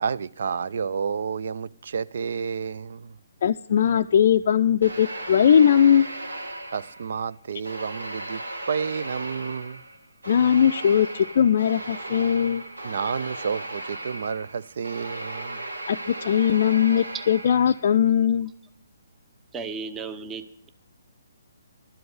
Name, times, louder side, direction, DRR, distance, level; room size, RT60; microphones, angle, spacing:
voice 1, 0.0-3.2 6.7-9.8 12.8-15.6, right 6 dB, 55° right, 0.4 m, -30 dB
voice 2, 3.4-6.1 10.3-12.6 15.9-18.5, left 8 dB, 50° left, 0.4 m, -20 dB
sound 1, 4.8-7.2 7.6-18.0, right 1 dB, 75° right, 1.5 m, -36 dB
voice 3, 19.5-20.7, right 5 dB, 15° right, 0.8 m, -34 dB
12.5 x 7.7 x 8.0 m
figure-of-eight pair, 135°, 0 cm